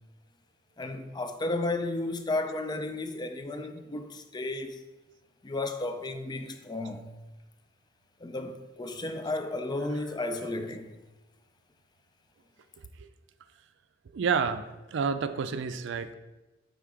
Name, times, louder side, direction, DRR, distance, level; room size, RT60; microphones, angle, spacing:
voice 1, 0.8-4.8 5.4-7.1 8.2-10.9, left 2 dB, 20° left, 0.4 m, -33 dB
voice 2, 14.1-16.1, right 6 dB, 65° right, 0.4 m, -29 dB
5.7 x 3.7 x 4.8 m
head